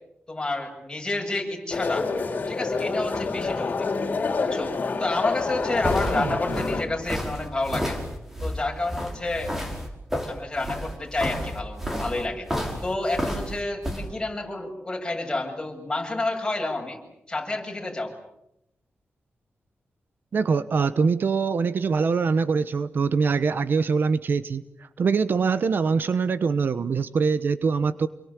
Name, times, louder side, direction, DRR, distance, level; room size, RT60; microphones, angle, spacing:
voice 1, 0.3-2.1 2.5-3.9 4.4-4.7 5.0-8.0 8.4-9.5 10.3-12.5 12.8-17.0 17.3-18.1, left 2 dB, 20° left, 1 dB, 7.6 m, -29 dB
sound 1, 1.7-6.8, left 4 dB, 45° left, 4.1 m, -27 dB
sound 2, 5.4-14.0, equal, 5° right, 5.5 m, -31 dB
voice 2, 20.3-24.6 25.0-28.1, right 5 dB, 60° right, 14 dB, 1.0 m, -23 dB
29.0 x 23.0 x 8.4 m, 0.82 s
wide cardioid pair, 130°, 4 cm